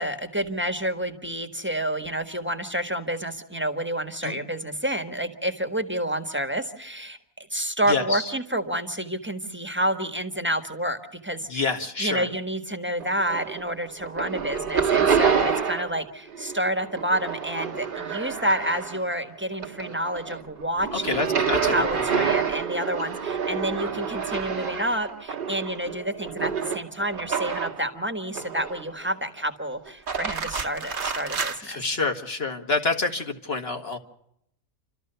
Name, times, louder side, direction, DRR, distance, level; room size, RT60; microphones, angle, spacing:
voice 1, 0.0-11.7 12.0-21.2 21.7-31.8, right 1 dB, 10° right, 6 dB, 1.3 m, -29 dB
voice 2, 7.9-8.3 11.5-12.3 20.9-22.3 31.6-34.0, left 3 dB, 45° left, 4 dB, 1.8 m, -28 dB
sound 1, 13.0-13.7 14.0-16.0 16.3-19.2 19.5-27.9 28.3-29.0 29.9-31.6, right 6 dB, 40° right, 1.2 m, -28 dB
29.5 x 13.5 x 6.8 m, 0.77 s
omnidirectional pair, 1.4 m